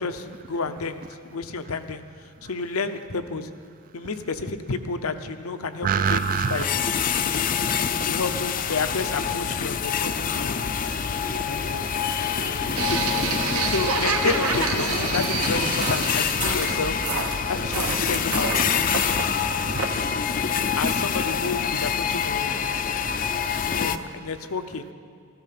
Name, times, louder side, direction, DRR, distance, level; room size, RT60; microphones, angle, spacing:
voice 1, 0.0-2.0 2.4-3.5 3.9-6.6 8.0-10.6 11.0-11.1 11.5-12.0 12.9-13.1 13.6-17.0 17.5-18.5 20.8-22.7 23.7-24.9, left 4 dB, 80° left, 9 dB, 0.8 m, -30 dB
voice 2, 5.8-6.7 7.2-7.3 8.0-8.1 9.4-9.5 10.2-10.7 11.1-12.1 12.6-12.9 13.5-13.7 19.1-20.7 23.0-23.3 23.8-23.9, right 6 dB, 40° right, 15 dB, 0.3 m, -31 dB
sound 1, 6.1-24.0, left 7 dB, 40° left, 0.5 m, -26 dB
sound 2, 12.8-19.9, right 5 dB, 75° right, 1.2 m, -29 dB
14.5 x 13.0 x 5.9 m, 2.2 s
head